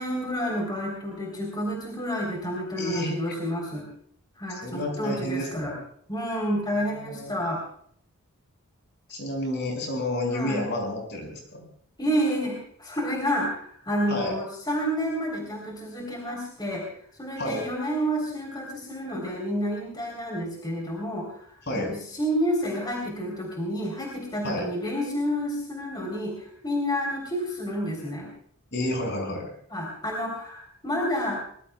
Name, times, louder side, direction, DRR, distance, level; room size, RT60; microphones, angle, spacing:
voice 1, 0.0-3.9 4.4-5.7 6.1-7.6 10.3-10.6 12.0-16.9 17.2-21.4 21.7-28.3 29.7-31.4, equal, 20° left, -1 dB, 3.5 m, -29 dB
voice 2, 2.8-3.4 4.5-5.7 6.8-7.3 9.1-11.7 14.1-14.4 17.4-17.6 21.7-21.9 24.4-24.7 28.7-29.5, left 1 dB, 50° left, 1 dB, 5.8 m, -30 dB
23.5 x 20.5 x 2.3 m, 0.62 s
head